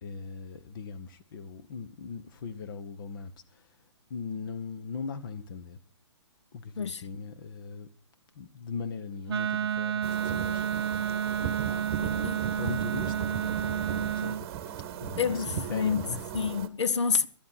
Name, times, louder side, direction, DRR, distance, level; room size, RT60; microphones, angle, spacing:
voice 1, 0.0-3.7 4.1-5.8 6.5-7.9 8.3-16.2, left 5 dB, 45° left, 1.5 m, -40 dB
Wind instrument woodwind instrument, 9.3-14.4, right 8 dB, 55° right, 0.7 m, -30 dB
sound 1, 10.0-16.7, right 9 dB, 30° right, 1.4 m, -37 dB
voice 2, 12.0-12.4 15.2-16.0 16.3-17.3, left 6 dB, 70° left, 0.9 m, -28 dB
13.5 x 10.5 x 5.8 m
figure-of-eight pair, 125°, 15 cm